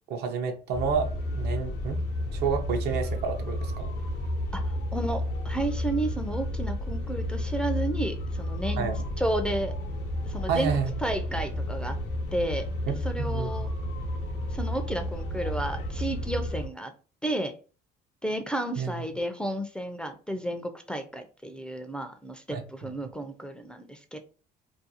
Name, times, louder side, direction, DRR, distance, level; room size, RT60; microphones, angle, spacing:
voice 1, 0.1-1.1 1.3-2.0 2.3-3.9 8.8-9.0 10.5-10.9 12.9-13.5 18.8-18.9 22.5-22.6, right 6 dB, 70° right, 5 dB, 0.6 m, -29 dB
sound 1, 0.7-16.7, left 1 dB, 85° left, 0.6 m, -31 dB
voice 2, 4.5-8.9 9.2-9.8 10.3-10.7 11.0-12.0 12.3-12.7 13.0-13.7 14.5-16.9 17.2-17.5 18.2-24.2, right 1 dB, 5° left, 5 dB, 0.3 m, -32 dB
2.5 x 2.2 x 2.7 m, 0.36 s
cardioid pair, 110°, 17 cm